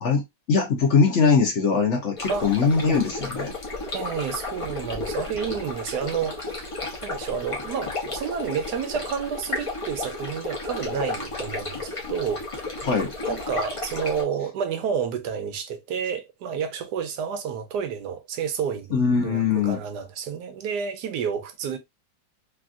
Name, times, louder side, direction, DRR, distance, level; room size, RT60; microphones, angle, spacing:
voice 1, 0.5-3.5 12.8-13.1 18.9-19.8, left 5 dB, 55° left, 1.0 m, -21 dB
sound 1, 2.2-14.2, left 3 dB, 25° left, 0.7 m, -33 dB
voice 2, 3.9-6.6 7.0-12.5 12.8-12.9 13.3-21.8, right 7 dB, 85° right, 1.3 m, -30 dB
3.3 x 2.4 x 2.4 m
omnidirectional pair, 1.7 m